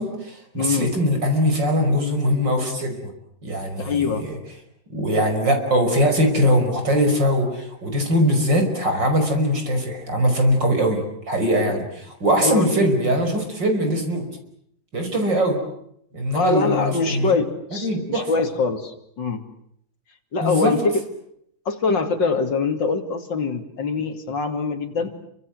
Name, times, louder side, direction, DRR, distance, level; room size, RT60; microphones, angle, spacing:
voice 1, 0.0-3.0 3.4-4.4 4.9-14.3 14.9-15.6 16.1-17.3 17.8-18.3 20.4-20.8, equal, 60° right, 5 dB, 6.1 m, -21 dB
voice 2, 0.5-0.9 3.8-4.3 11.7-11.8 12.4-12.8 16.3-19.4 20.3-21.0 21.7-25.1, left 4 dB, 65° left, 6 dB, 3.3 m, -23 dB
29.0 x 25.0 x 7.9 m, 0.72 s
omnidirectional pair, 2.2 m